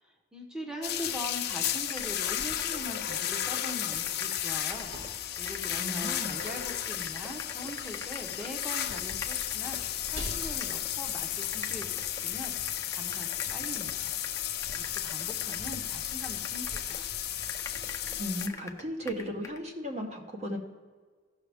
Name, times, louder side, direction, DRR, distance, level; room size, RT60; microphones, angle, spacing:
voice 1, 0.3-14.2 14.7-17.1, equal, 5° right, 0 dB, 0.9 m, -42 dB
sound 1, 0.8-18.5, left 11 dB, 55° left, 0.6 m, -34 dB
sound 2, 1.4-1.5 1.7-4.4 4.7-10.2 10.6-10.9 11.4-17.1 17.4-19.6, left 4 dB, 15° left, 0.5 m, -44 dB
sound 3, 4.3-12.3, equal, 85° right, 3.2 m, -49 dB
voice 2, 5.8-6.3 18.2-20.6, equal, 35° right, 2 dB, 1.1 m, -35 dB
15.0 x 6.1 x 3.5 m, 1.5 s
head